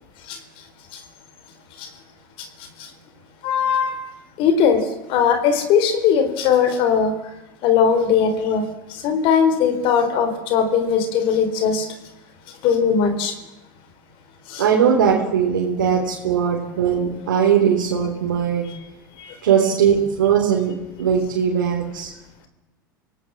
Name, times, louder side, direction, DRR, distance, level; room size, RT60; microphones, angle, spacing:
voice 1, 2.4-2.9 3.4-4.1 4.4-7.3 7.6-11.9 12.5-13.4 14.5-14.6 19.2-19.4, left 7 dB, 55° left, 8 dB, 3.9 m, -20 dB
voice 2, 14.6-18.7 19.4-20.7 21.0-22.1, right 7 dB, 80° right, -2 dB, 3.7 m, -19 dB
27.5 x 18.0 x 7.6 m, 0.99 s
hypercardioid pair, 85°, 11 cm